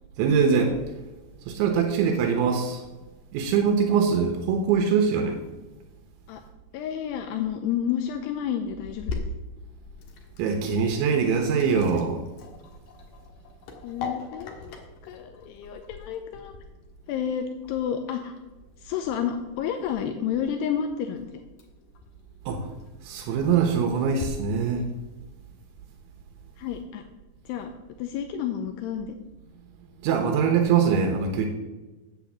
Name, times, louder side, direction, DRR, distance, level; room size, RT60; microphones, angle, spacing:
voice 1, 0.2-0.8 1.5-2.8 3.3-5.4 10.4-12.2 22.5-22.7 23.0-24.9 30.0-31.5, right 6 dB, 80° right, 4 dB, 3.4 m, -23 dB
voice 2, 6.7-9.2 13.8-16.5 17.1-18.4 18.8-21.3 26.6-27.0 27.5-27.7 28.0-29.2, left 8 dB, 80° left, 6 dB, 2.5 m, -30 dB
Sink (filling or washing), 8.8-24.3, left 4 dB, 65° left, 2.3 m, -42 dB
8.5 x 8.3 x 7.3 m, 1.2 s
omnidirectional pair, 5.3 m